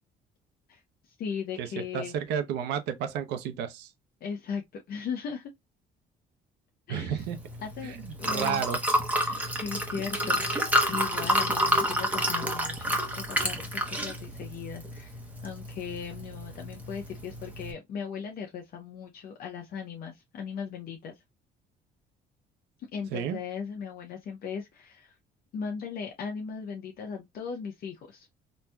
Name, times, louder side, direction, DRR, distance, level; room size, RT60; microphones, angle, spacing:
voice 1, 1.2-2.1 4.2-5.5 6.9-7.2 7.6-8.6 9.2-10.6 10.9-15.1 15.4-21.1 22.9-25.1 25.5-28.3, left 6 dB, 60° left, 0.7 m, -38 dB
voice 2, 1.9-3.9 6.9-7.4 7.8-8.8 23.1-23.4, right 8 dB, 90° right, 0.7 m, -32 dB
Liquid, 7.2-17.7, equal, 10° right, 0.9 m, -30 dB
4.1 x 2.6 x 2.2 m
cardioid pair, 110°, 17 cm